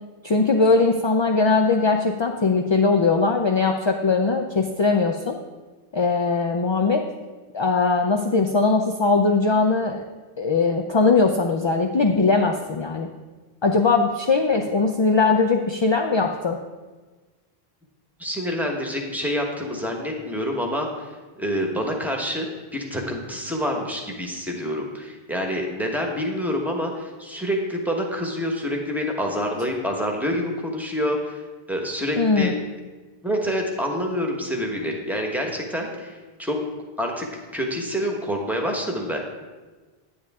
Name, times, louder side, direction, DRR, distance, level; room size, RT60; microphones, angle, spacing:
voice 1, 0.2-5.4 5.9-7.1 7.5-10.0 10.4-13.1 13.6-16.6 32.2-32.5, left 4 dB, 40° left, 4 dB, 0.4 m, -20 dB
voice 2, 18.2-22.5 22.7-31.4 31.7-32.5 33.2-36.6 37.0-37.3 37.5-39.2, equal, ahead, 0 dB, 1.2 m, -27 dB
9.6 x 9.4 x 3.6 m, 1.3 s
omnidirectional pair, 1.0 m